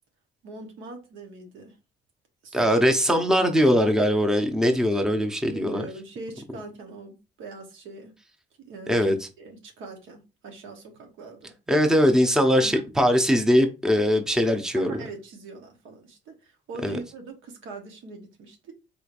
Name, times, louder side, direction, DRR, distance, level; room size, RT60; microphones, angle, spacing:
voice 1, 0.4-1.8 2.4-2.9 5.5-8.2 8.6-11.5 12.6-12.9 14.7-18.7, right 3 dB, 85° right, 1.1 m, -41 dB
voice 2, 2.5-5.8 8.9-9.1 11.7-14.9 16.8-17.0, equal, 5° right, 0.6 m, -21 dB
3.9 x 3.1 x 2.5 m
cardioid pair, 90°, 20 cm